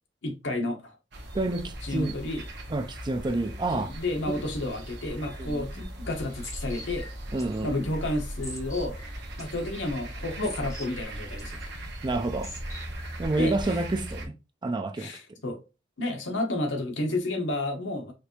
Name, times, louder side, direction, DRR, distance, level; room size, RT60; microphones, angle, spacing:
voice 1, 0.2-0.9 1.8-2.5 3.7-7.1 7.6-9.0 9.4-11.6 13.4-13.8 15.0-15.6 16.0-18.1, left 2 dB, 70° left, 1.2 m, -31 dB
sound 1, 1.1-14.3, right 1 dB, 65° right, 1.2 m, -39 dB
voice 2, 1.3-2.2 2.7-3.9 4.3-4.4 5.4-5.7 7.3-7.7 12.0-12.5 13.2-14.3 14.6-15.1, right 2 dB, 25° right, 0.4 m, -28 dB
sound 2, 5.4-13.3, equal, 15° left, 1.2 m, -42 dB
5.0 x 2.7 x 3.0 m
head